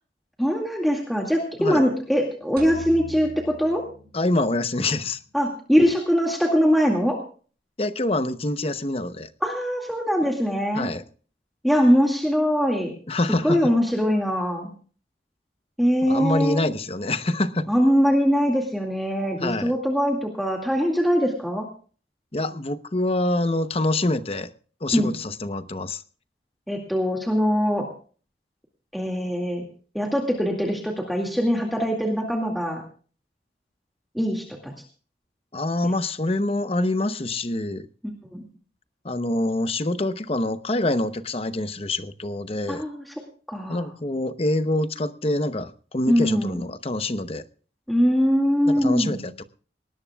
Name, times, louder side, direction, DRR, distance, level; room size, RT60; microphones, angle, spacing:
voice 1, 0.4-3.8 5.3-7.2 9.4-10.9 11.6-12.9 13.4-14.7 15.8-16.6 17.7-21.7 24.9-25.1 26.7-27.9 28.9-29.6 29.9-32.8 34.1-34.7 38.3-38.4 42.7-43.1 43.5-43.9 46.1-46.6 47.9-49.2, equal, ahead, 2.1 m, -22 dB
sound 1, 2.6-4.8, right 3 dB, 55° right, 6.4 m, -41 dB
voice 2, 4.1-5.2 7.8-9.3 10.7-11.0 13.1-13.6 16.0-17.7 19.4-19.7 22.3-24.5 24.8-26.0 35.5-37.9 39.0-42.8 43.7-47.4 48.7-49.4, left 2 dB, 35° left, 0.8 m, -26 dB
19.5 x 18.5 x 2.3 m
head